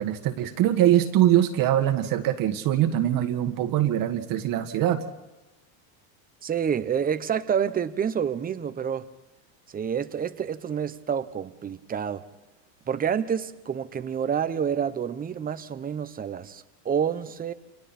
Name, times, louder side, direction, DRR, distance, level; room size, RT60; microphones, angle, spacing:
voice 1, 0.0-5.0, right 12 dB, 40° right, 1.9 m, -23 dB
voice 2, 6.4-9.1 9.7-12.2 12.9-17.5, right 8 dB, 15° right, 1.0 m, -28 dB
30.0 x 28.5 x 4.4 m
supercardioid pair, 145°, 49 cm